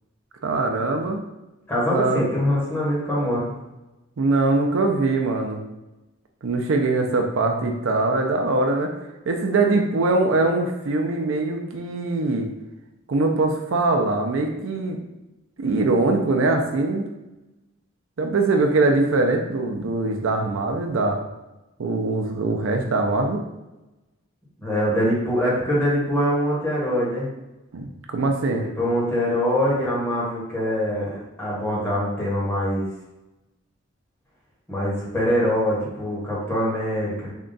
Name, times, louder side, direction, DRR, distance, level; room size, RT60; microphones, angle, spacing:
voice 1, 0.4-1.2 1.9-2.3 4.2-5.6 6.4-8.9 9.3-12.5 13.1-15.0 15.6-17.1 18.2-21.2 21.8-23.4 27.7-28.7, right 3 dB, 75° right, 3 dB, 0.5 m, -22 dB
voice 2, 1.7-3.5 24.6-27.3 28.5-31.1 31.4-32.9 34.7-37.3, equal, 10° left, -7 dB, 1.3 m, -23 dB
3.6 x 2.2 x 3.9 m, 0.99 s
head